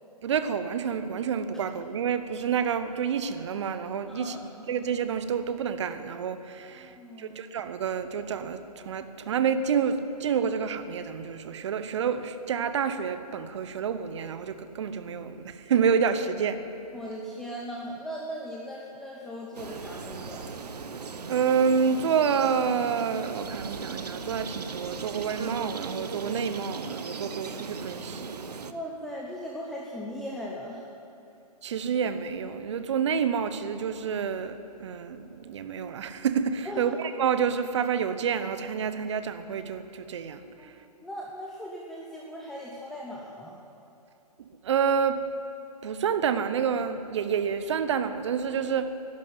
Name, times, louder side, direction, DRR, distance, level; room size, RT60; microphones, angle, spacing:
voice 1, 0.2-4.4 4.7-16.6 21.3-28.5 31.6-40.7 44.4-45.2 45.8-48.9, right 7 dB, 45° right, 11 dB, 0.9 m, -28 dB
voice 2, 4.1-4.4 6.7-7.4 16.9-20.6 28.7-30.8 36.6-36.9 40.6-40.7 41.0-43.6, equal, ahead, -3 dB, 0.8 m, -38 dB
sound 1, 19.5-28.7, right 5 dB, 75° right, 0.9 m, -38 dB
11.5 x 11.5 x 9.4 m, 2.8 s
figure-of-eight pair, 140°, 21 cm